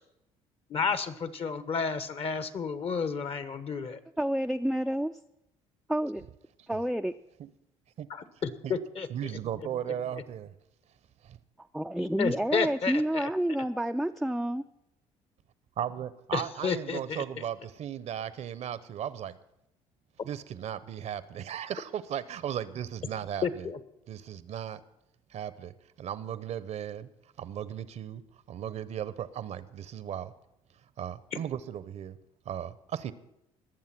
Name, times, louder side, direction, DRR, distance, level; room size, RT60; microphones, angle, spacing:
voice 1, 0.7-4.0 8.1-9.3 12.2-13.3 16.3-17.2 23.4-23.8, left 5 dB, 50° left, 13 dB, 1.2 m, -31 dB
voice 2, 4.2-5.1 5.9-6.2 6.7-7.1 11.7-14.6, right 1 dB, ahead, 6 dB, 0.4 m, -29 dB
voice 3, 9.1-10.5 11.2-11.4 15.8-19.4 20.2-23.7 24.1-24.8 25.3-27.1 27.4-28.2 28.5-30.3 31.0-32.2 32.5-33.1, right 10 dB, 60° right, 16 dB, 0.7 m, -36 dB
20.5 x 7.2 x 5.9 m, 0.85 s
supercardioid pair, 70°, 13 cm